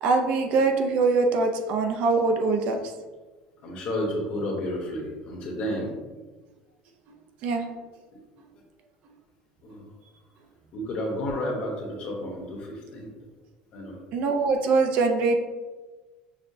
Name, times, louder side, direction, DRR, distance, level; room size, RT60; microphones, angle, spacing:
voice 1, 0.0-2.8 7.4-7.6 14.1-15.4, right 3 dB, 50° right, 4 dB, 0.4 m, -23 dB
voice 2, 3.6-5.9 9.6-9.9 10.7-13.1 13.7-14.0, left 1 dB, 40° left, -1 dB, 0.9 m, -31 dB
6.2 x 2.1 x 2.7 m, 1.3 s
cardioid pair, 175°, 3 cm